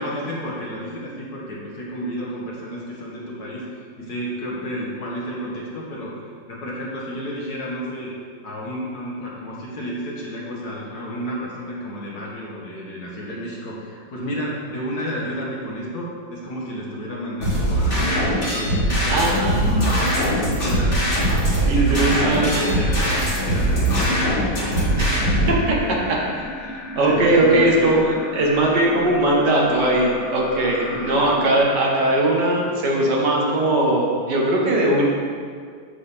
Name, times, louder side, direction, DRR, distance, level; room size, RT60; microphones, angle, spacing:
voice 1, 0.0-8.1 8.4-21.1 21.6-24.9 25.3-25.6 27.0-28.0 30.8-31.3, equal, 55° left, -4 dB, 2.0 m, -31 dB
sound 1, 17.4-25.5, right 1 dB, 30° left, 2.0 m, -21 dB
voice 2, 19.1-19.9 21.7-22.7 25.0-25.1 25.5-25.8 26.1-26.5 26.7-35.0, right 1 dB, 65° right, -2 dB, 1.9 m, -20 dB
sound 2, 21.6-31.6, left 1 dB, 85° left, 2.2 m, -36 dB
8.5 x 4.0 x 6.7 m, 2.1 s
omnidirectional pair, 2.0 m